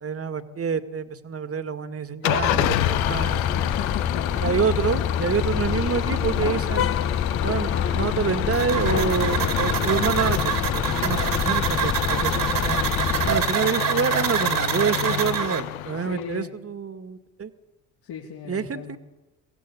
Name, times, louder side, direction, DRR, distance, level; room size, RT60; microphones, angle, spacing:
voice 1, 0.0-3.7 4.4-6.9 7.4-12.8 13.2-17.5 18.5-19.0, right 6 dB, 35° right, 11 dB, 2.1 m, -27 dB
Engine starting / Idling, 2.2-16.4, left 13 dB, 90° left, 1.0 m, -29 dB
sound 1, 2.3-13.5, left 8 dB, 35° left, 1.0 m, -27 dB
voice 2, 3.6-4.6 16.0-16.5 18.0-19.0, left 9 dB, 65° left, -2 dB, 3.6 m, -37 dB
sound 2, 8.5-15.6, right 9 dB, 55° right, 2.7 m, -26 dB
24.5 x 16.5 x 8.6 m, 1.0 s
hypercardioid pair, 60°, 41 cm